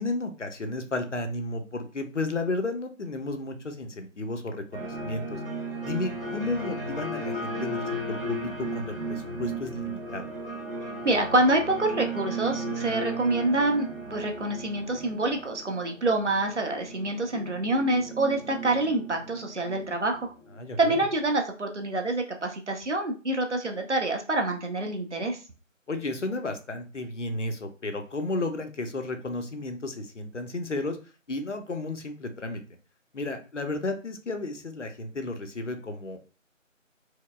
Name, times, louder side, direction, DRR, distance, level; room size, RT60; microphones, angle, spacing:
voice 1, 0.0-5.4 5.8-10.2 20.6-21.0 25.9-31.0 31.3-32.6 33.1-36.3, left 2 dB, 65° left, 7 dB, 0.7 m, -33 dB
sound 1, 4.7-21.1, right 1 dB, 45° right, 1.5 m, -35 dB
voice 2, 11.0-20.3 20.8-25.4, right 2 dB, 60° right, 3 dB, 0.8 m, -26 dB
4.6 x 2.1 x 2.3 m, 0.34 s
figure-of-eight pair, 180°, 40 cm